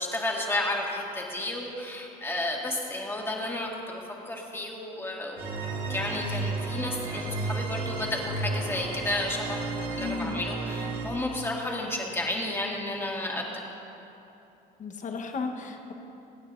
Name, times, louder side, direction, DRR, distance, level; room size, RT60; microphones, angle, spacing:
voice 1, 0.0-5.4 5.9-13.5, left 1 dB, 15° left, -2 dB, 1.9 m, -32 dB
sound 1, 5.4-11.1, right 3 dB, 70° right, 3.0 m, -32 dB
voice 2, 9.9-10.4 14.8-15.9, left 4 dB, 50° left, 3 dB, 1.3 m, -34 dB
24.5 x 9.2 x 2.7 m, 2.9 s
cardioid pair, 110°, 17 cm